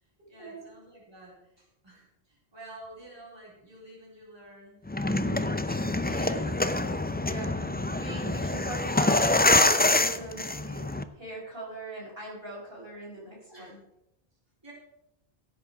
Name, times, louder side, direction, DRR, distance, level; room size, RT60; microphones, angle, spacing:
voice 1, 0.3-5.1 13.5-13.7 14.6-14.7, right 1 dB, 20° right, -6 dB, 4.3 m, -50 dB
sound 1, 4.9-11.0, left 2 dB, 15° left, 0.3 m, -25 dB
voice 2, 5.6-6.9 7.2-10.9 11.2-13.8, right 1 dB, 60° right, -3 dB, 4.8 m, -39 dB
15.5 x 8.5 x 4.8 m, 0.85 s
omnidirectional pair, 1.1 m